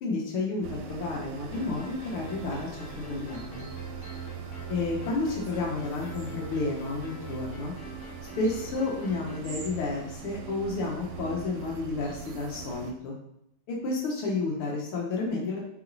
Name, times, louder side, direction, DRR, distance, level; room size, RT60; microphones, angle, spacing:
voice 1, 0.0-2.7 3.0-3.7 4.7-7.7 8.4-13.1 13.7-15.6, left 3 dB, 75° left, -2 dB, 2.0 m, -31 dB
sound 1, 0.6-12.9, right 7 dB, 85° right, 1.6 m, -41 dB
sound 2, 1.5-9.5, left 3 dB, 55° left, 1.8 m, -47 dB
sound 3, 3.3-4.3 5.9-6.5 8.4-8.8 9.4-9.8 10.8-10.9 11.9-12.4 13.0-13.1, right 3 dB, 65° right, 1.6 m, -48 dB
6.4 x 4.1 x 3.9 m, 0.78 s
omnidirectional pair, 2.4 m